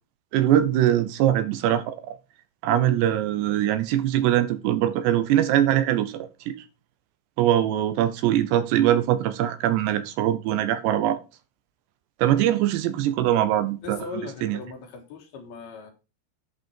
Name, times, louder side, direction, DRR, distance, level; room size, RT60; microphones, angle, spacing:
voice 1, 0.3-2.2 2.6-6.6 7.4-11.2 12.2-14.0 14.4-14.6, right 12 dB, 75° right, 2.8 m, -22 dB
voice 2, 13.8-15.9, left 4 dB, 65° left, 3.1 m, -38 dB
11.5 x 5.6 x 4.5 m
omnidirectional pair, 5.2 m